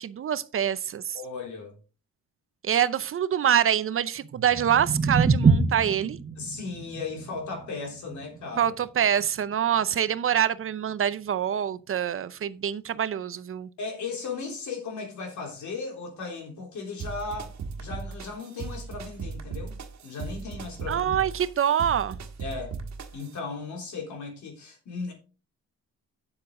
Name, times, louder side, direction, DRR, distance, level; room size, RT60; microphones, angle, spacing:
voice 1, 0.0-1.2 2.6-6.2 8.6-13.7 20.9-22.2, right 9 dB, 45° right, 0.6 m, -25 dB
voice 2, 1.1-1.7 6.4-8.7 13.8-19.8 20.0-21.1 22.4-22.7 23.1-25.1, left 4 dB, 70° left, 3.6 m, -36 dB
sound 1, 4.2-10.4, right 4 dB, 25° right, 1.4 m, -27 dB
sound 2, 17.0-23.4, right 5 dB, 65° right, 1.5 m, -38 dB
8.9 x 7.6 x 3.7 m
cardioid pair, 90°, 30 cm